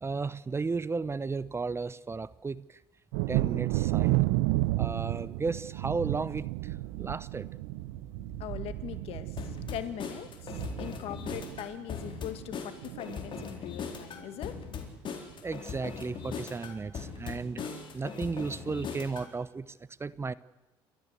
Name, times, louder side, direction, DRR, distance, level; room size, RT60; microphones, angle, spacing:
voice 1, 0.0-2.6 3.3-4.2 4.8-7.5 15.4-17.7 17.9-19.7 20.0-20.3, right 4 dB, 25° right, 18 dB, 0.8 m, -34 dB
Thunder, 3.1-12.6 12.8-13.5 13.9-14.0 14.4-14.6, right 19 dB, 85° right, 0.7 m, -32 dB
voice 2, 8.4-9.3 9.7-14.5, left 11 dB, 65° left, 11 dB, 2.0 m, -41 dB
sound 1, 9.4-19.3, left 6 dB, 50° left, 4.2 m, -40 dB
29.5 x 14.0 x 8.2 m, 1.0 s
supercardioid pair, 80°, 11 cm